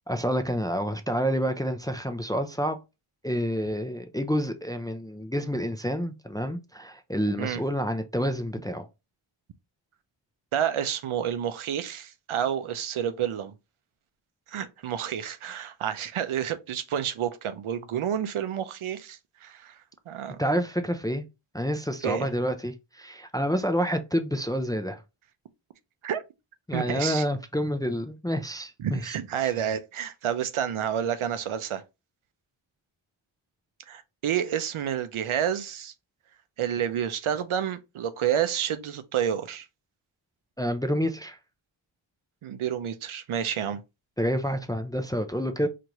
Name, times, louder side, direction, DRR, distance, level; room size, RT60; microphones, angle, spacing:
voice 1, 0.1-2.8 3.2-8.9 20.4-21.2 21.5-25.0 26.7-29.2 29.4-29.5 40.6-41.4 44.2-45.7, equal, 10° left, 0.4 m, -28 dB
voice 2, 10.5-13.5 14.5-19.8 20.1-20.4 22.0-22.3 26.0-26.2 26.7-27.2 28.8-31.8 33.9-35.9 36.6-39.7 42.4-43.8, right 9 dB, 80° right, 0.6 m, -29 dB
4.6 x 2.5 x 2.9 m
wide cardioid pair, 65°, 48 cm